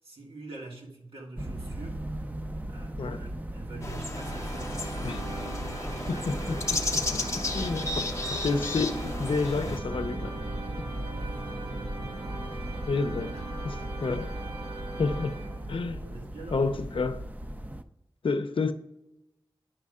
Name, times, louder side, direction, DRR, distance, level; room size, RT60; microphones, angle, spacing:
voice 1, 0.0-2.0 2.7-5.2 5.5-6.3 6.7-7.1 13.3-13.4 14.9-15.3 15.8-16.7, right 3 dB, 85° right, 1.8 m, -46 dB
sound 1, 1.4-17.8, right 1 dB, 20° right, 0.5 m, -37 dB
sound 2, 3.8-9.8, left 3 dB, 35° left, 0.7 m, -34 dB
sound 3, 4.1-16.1, right 2 dB, 60° right, 1.6 m, -40 dB
voice 2, 6.1-7.9 8.3-10.4 12.9-13.4 13.6-14.3 15.0-15.4 15.7-16.0 16.5-17.2 18.2-18.7, left 4 dB, 70° left, 0.6 m, -30 dB
10.0 x 5.4 x 3.6 m
wide cardioid pair, 80°, 9 cm